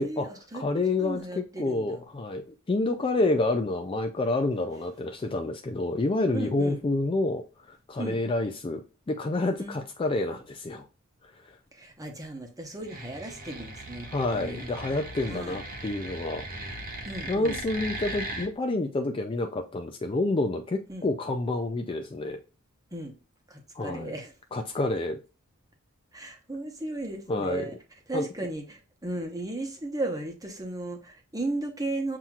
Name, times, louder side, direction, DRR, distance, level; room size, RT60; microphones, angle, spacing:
voice 1, 0.0-2.0 6.3-6.8 8.0-8.2 9.6-9.8 11.7-14.7 15.2-15.6 17.0-17.6 20.9-21.1 22.9-23.1 23.5-24.3 26.1-27.8 28.1-32.2, right 2 dB, 15° right, 1.0 m, -35 dB
voice 2, 0.5-10.9 11.2-11.6 14.1-16.5 17.3-22.4 23.7-24.1 24.5-25.2 27.3-27.7 28.1-28.3, left 2 dB, 25° left, 0.3 m, -28 dB
sound 1, 12.8-18.5, right 1 dB, 40° right, 1.0 m, -38 dB
7.4 x 2.8 x 2.4 m
head